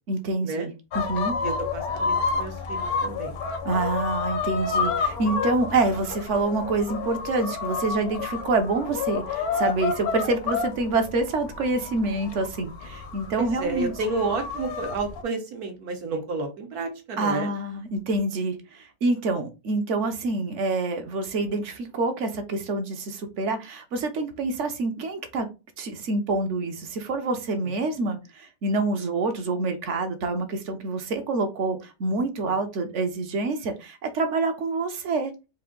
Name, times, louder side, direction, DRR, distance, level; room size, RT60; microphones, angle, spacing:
voice 1, 0.1-1.4 3.6-13.9 17.2-25.5 25.8-35.3, right 3 dB, 60° right, 1.0 m, -27 dB
sound 1, 0.9-15.2, left 5 dB, 75° left, 1.3 m, -30 dB
voice 2, 1.4-3.3 13.4-17.5 27.6-27.7 32.4-32.6, right 3 dB, 80° right, 1.6 m, -31 dB
4.4 x 2.6 x 3.7 m
omnidirectional pair, 1.6 m